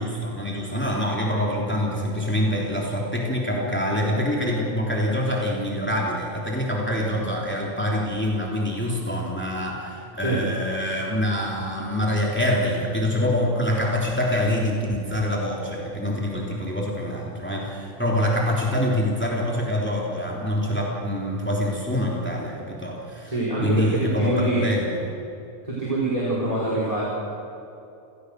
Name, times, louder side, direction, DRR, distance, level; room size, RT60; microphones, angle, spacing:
voice 1, 0.0-23.3 23.6-25.1, left 1 dB, 10° left, -3 dB, 3.2 m, -25 dB
voice 2, 23.2-24.7 25.6-27.0, right 2 dB, 30° right, -6 dB, 4.9 m, -25 dB
28.5 x 17.5 x 6.6 m, 2.8 s
omnidirectional pair, 1.3 m